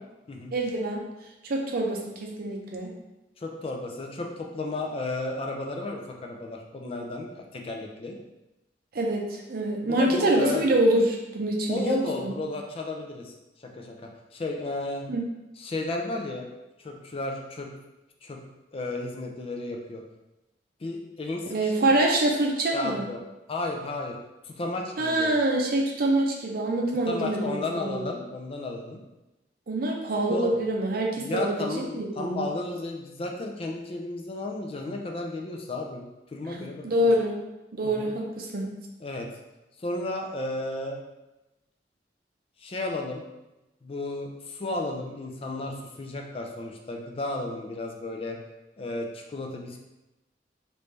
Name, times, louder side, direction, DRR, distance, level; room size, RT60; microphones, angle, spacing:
voice 1, 0.5-1.0 1.4-2.9 8.9-12.3 15.1-15.2 21.5-23.1 25.0-27.6 27.9-28.1 29.7-32.5 36.5-37.4 37.7-38.7, right 1 dB, 55° right, 0 dB, 0.6 m, -25 dB
voice 2, 3.4-8.2 9.8-10.6 11.7-13.3 13.6-15.1 15.6-16.5 16.8-17.7 18.2-18.4 18.7-20.0 20.8-21.9 22.7-23.2 23.5-24.1 24.4-25.3 27.1-29.0 30.3-30.5 31.2-36.0 36.3-37.1 37.8-38.1 39.0-39.3 39.8-41.0 42.6-43.2 43.8-48.4 48.8-49.8, left 2 dB, 35° left, 1 dB, 0.4 m, -33 dB
3.2 x 2.6 x 3.2 m, 0.99 s
head